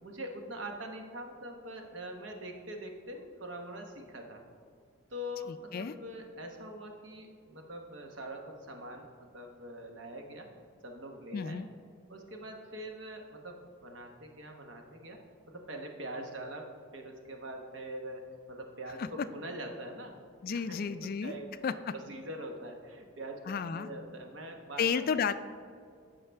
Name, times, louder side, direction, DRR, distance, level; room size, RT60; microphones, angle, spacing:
voice 1, 0.0-4.4 5.1-9.1 9.3-10.5 10.8-11.6 12.1-15.2 15.5-20.2 20.5-20.8 21.2-24.8, right 1 dB, 65° right, 3 dB, 1.1 m, -43 dB
voice 2, 5.5-5.9 11.3-11.7 19.0-19.1 20.4-21.3 21.6-21.9 23.5-23.9 24.8-25.3, left 6 dB, 45° left, 12 dB, 0.3 m, -32 dB
14.5 x 5.6 x 3.4 m, 2.2 s
head